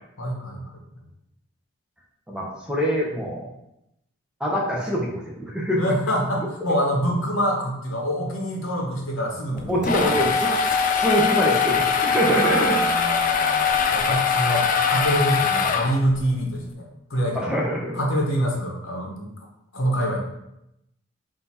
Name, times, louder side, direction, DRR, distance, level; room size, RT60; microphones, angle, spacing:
voice 1, 0.2-0.7 5.8-10.1 12.2-17.6 17.9-19.3 19.7-20.2, equal, 90° left, 0 dB, 1.0 m, -26 dB
voice 2, 2.3-3.5 4.4-5.8 9.7-10.5 10.9-12.8 17.3-18.0, equal, 5° right, -3 dB, 0.8 m, -24 dB
sound 1, 9.6-16.3, left 5 dB, 40° left, 0.3 m, -22 dB
4.3 x 2.7 x 4.1 m, 0.83 s
head